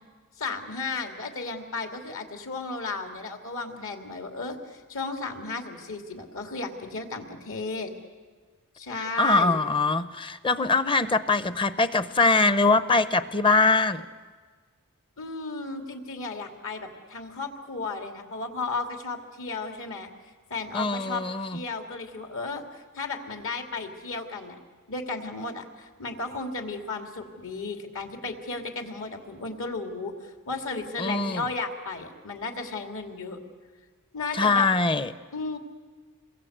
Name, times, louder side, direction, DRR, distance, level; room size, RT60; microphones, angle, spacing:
voice 1, 0.4-7.9 8.7-9.6 15.2-20.1 20.5-24.5 24.9-30.1 30.5-33.4 34.1-34.7 35.3-35.6, left 3 dB, 65° left, 5 dB, 2.8 m, -34 dB
voice 2, 9.2-14.1 20.7-21.6 31.0-31.5 34.3-35.1, left 3 dB, 25° left, 14 dB, 0.8 m, -23 dB
27.5 x 22.0 x 8.1 m, 1.5 s
head